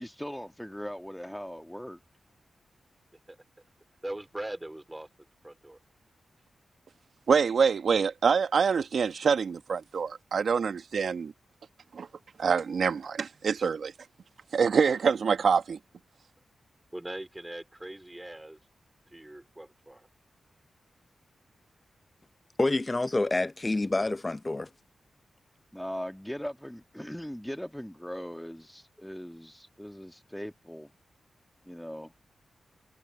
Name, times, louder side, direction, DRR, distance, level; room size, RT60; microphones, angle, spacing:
voice 1, 0.0-2.0 25.7-30.9 31.6-32.1, equal, 5° left, 1.7 m, -39 dB
voice 2, 4.0-5.1 5.4-5.8 16.9-18.6 19.1-20.1, right 1 dB, 15° right, 2.6 m, -40 dB
voice 3, 7.3-11.3 11.9-12.1 12.4-13.9 14.5-15.8, right 6 dB, 70° right, 1.6 m, -25 dB
voice 4, 22.6-24.7, left 2 dB, 30° left, 0.8 m, -27 dB
supercardioid pair, 40°, 0 cm